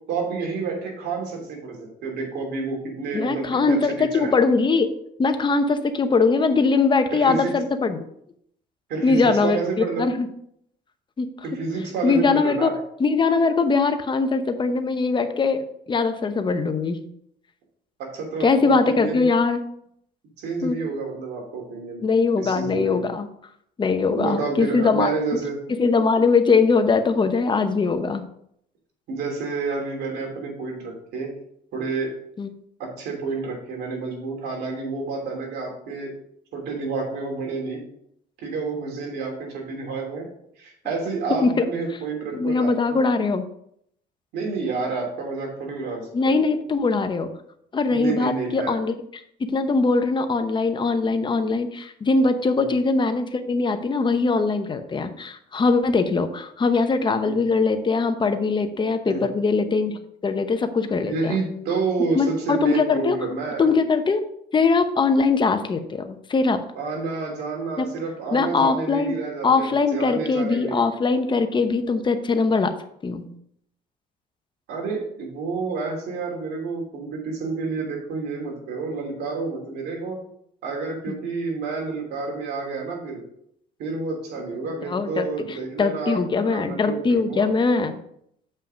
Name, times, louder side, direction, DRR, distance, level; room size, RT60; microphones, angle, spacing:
voice 1, 0.0-4.3 7.1-7.5 8.9-10.1 11.4-12.7 18.0-19.3 20.4-22.0 22.4-23.1 24.1-25.6 29.1-31.3 31.7-32.1 32.8-36.1 36.5-37.8 38.4-40.3 40.6-42.7 44.3-46.5 47.9-48.8 52.6-52.7 57.2-57.4 59.0-59.3 61.0-63.7 66.7-70.9 74.7-80.2 80.6-83.2 83.8-87.5, right 4 dB, 75° right, 1 dB, 3.1 m, -29 dB
voice 2, 3.1-4.9 5.2-8.0 9.0-10.3 11.2-11.3 12.0-12.7 13.0-17.1 18.4-19.6 20.6-20.8 22.0-23.3 23.8-25.4 25.8-28.2 32.4-32.5 41.4-41.6 42.3-43.4 46.1-47.3 47.7-48.9 49.5-61.4 62.1-63.2 63.6-64.3 64.5-66.6 67.8-67.9 68.3-69.1 69.4-72.7 73.0-73.3 81.1-81.2 84.9-88.0, left 4 dB, 30° left, 8 dB, 0.9 m, -21 dB
7.2 x 5.6 x 5.1 m, 0.71 s
cardioid pair, 110°, 17 cm